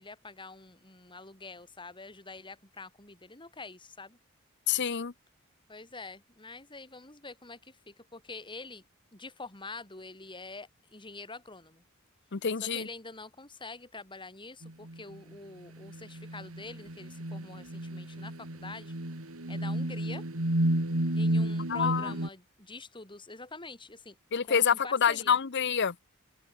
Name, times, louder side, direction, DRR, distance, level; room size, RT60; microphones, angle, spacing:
voice 1, 0.0-4.2 5.7-8.8 9.1-11.8 12.6-18.9 19.5-20.2 21.1-24.2 24.5-25.4, left 3 dB, 25° left, 4.3 m, -46 dB
voice 2, 4.7-5.1 12.3-12.9 21.7-22.1 24.3-25.9, left 7 dB, 55° left, 0.8 m, -27 dB
sound 1, 14.6-15.2 15.8-22.3, right 1 dB, 80° right, 3.0 m, -31 dB
open air
head